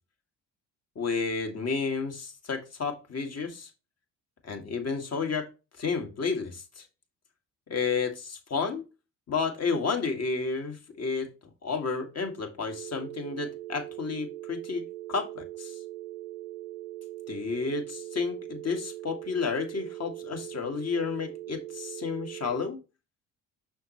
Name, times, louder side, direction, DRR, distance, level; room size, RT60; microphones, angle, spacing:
voice 1, 1.0-3.7 4.4-5.5 5.8-6.9 7.7-8.8 9.3-11.3 11.6-15.8 17.3-22.8, left 5 dB, 35° left, 5 dB, 1.9 m, -31 dB
sound 1, 12.7-22.7, right 15 dB, 60° right, 0.7 m, -41 dB
6.3 x 6.1 x 3.0 m, 0.29 s
hypercardioid pair, 50°, 43 cm